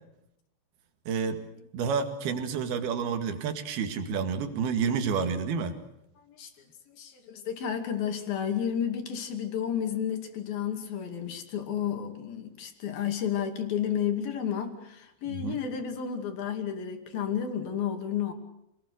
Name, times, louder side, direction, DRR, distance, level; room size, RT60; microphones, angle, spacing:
voice 1, 1.1-1.4 1.7-5.7 15.3-15.6, right 6 dB, 60° right, 7 dB, 3.6 m, -29 dB
voice 2, 6.9-18.3, left 8 dB, 55° left, 5 dB, 3.8 m, -31 dB
28.0 x 20.5 x 6.5 m, 0.81 s
omnidirectional pair, 5.7 m